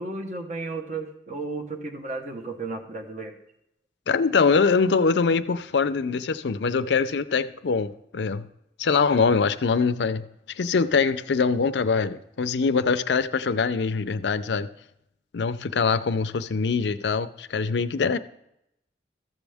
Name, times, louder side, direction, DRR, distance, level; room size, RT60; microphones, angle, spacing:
voice 1, 0.0-3.3, right 3 dB, 45° right, 3 dB, 1.1 m, -33 dB
voice 2, 4.1-8.5 8.8-14.7 15.3-18.2, left 5 dB, 80° left, 12 dB, 0.5 m, -23 dB
13.5 x 7.2 x 3.5 m, 0.80 s
head